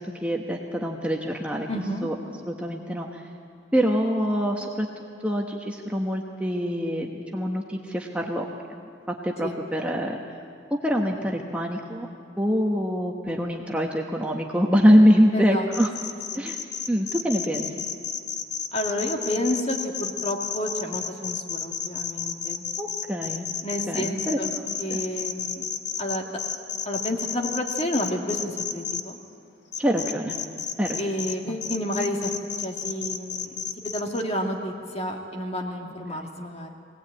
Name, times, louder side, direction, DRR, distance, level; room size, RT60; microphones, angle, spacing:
voice 1, 0.2-1.7 2.0-2.1 2.4-3.2 3.7-4.9 5.2-8.8 9.2-10.2 10.8-12.1 12.4-15.9 16.3-16.6 16.9-17.7 22.8-23.5 23.9-24.4 24.9-25.0 29.8-30.3 30.8-31.0 31.5-31.6 36.1-36.3, equal, 5° right, 0 dB, 1.0 m, -24 dB
voice 2, 1.7-2.1 9.4-9.6 15.3-15.7 16.3-16.5 18.7-22.6 23.6-24.5 24.8-25.6 26.0-26.4 26.9-29.2 31.0-32.3 32.6-33.6 33.8-36.7, equal, 30° left, 1 dB, 2.1 m, -30 dB
sound 1, 15.7-29.0 29.7-31.3 31.6-34.2, left 7 dB, 60° left, 1.1 m, -31 dB
22.0 x 18.0 x 8.7 m, 2.4 s
head